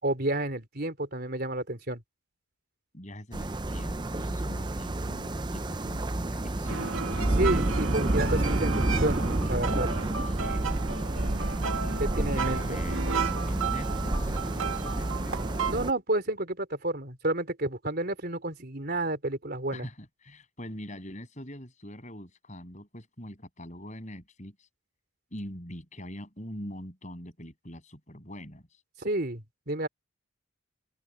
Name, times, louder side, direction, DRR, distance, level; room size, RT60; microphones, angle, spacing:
voice 1, 0.0-2.0 7.4-9.2 9.5-9.9 12.0-12.8 15.7-19.9 29.0-29.9, right 1 dB, 45° right, 3.9 m, -30 dB
voice 2, 2.9-7.4 9.9-10.9 12.2-15.4 19.7-24.7 25.3-28.8, equal, 35° left, 7.6 m, -43 dB
sound 1, 3.3-15.9, right 1 dB, 20° right, 0.6 m, -30 dB
sound 2, 6.7-15.7, right 5 dB, 75° right, 1.6 m, -33 dB
open air
head